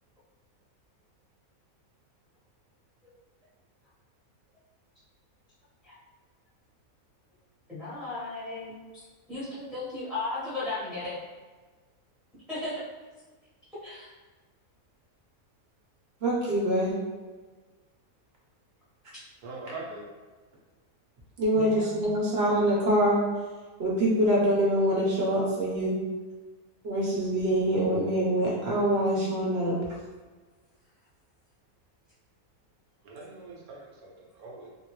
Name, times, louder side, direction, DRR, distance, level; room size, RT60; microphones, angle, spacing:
voice 1, 7.7-11.2 12.5-12.8 13.8-14.1 21.5-22.1, left 2 dB, ahead, -12 dB, 1.1 m, -36 dB
voice 2, 16.2-16.9 21.4-23.2 23.8-26.0 26.8-29.7, equal, 50° right, -4 dB, 1.0 m, -25 dB
voice 3, 19.4-20.1 33.0-34.7, right 3 dB, 90° right, -3 dB, 1.2 m, -42 dB
3.5 x 2.7 x 3.0 m, 1.4 s
omnidirectional pair, 1.5 m